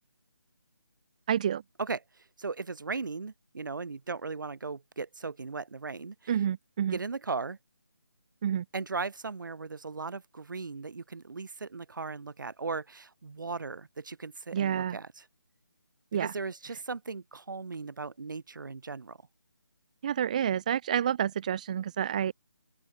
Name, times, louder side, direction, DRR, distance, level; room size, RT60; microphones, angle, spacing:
voice 1, 1.3-1.6 6.3-7.0 8.4-8.6 14.5-15.0 16.1-16.3 20.0-22.3, right 9 dB, 20° right, 0.6 m, -29 dB
voice 2, 2.4-6.3 6.9-7.6 8.7-15.2 16.2-19.2, right 4 dB, 60° right, 1.9 m, -37 dB
open air
figure-of-eight pair, 165°, 12 cm